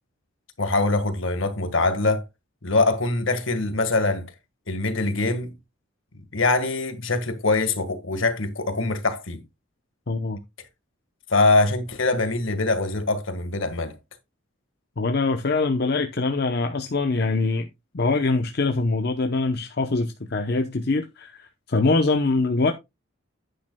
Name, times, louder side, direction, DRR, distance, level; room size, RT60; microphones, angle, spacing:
voice 1, 0.6-2.2 2.6-4.3 4.7-5.5 6.3-9.4 11.3-14.0, left 3 dB, 70° left, 1.6 m, -23 dB
voice 2, 10.1-10.4 15.0-17.7 17.9-22.7, left 3 dB, 50° left, 0.8 m, -23 dB
10.5 x 9.3 x 2.2 m
head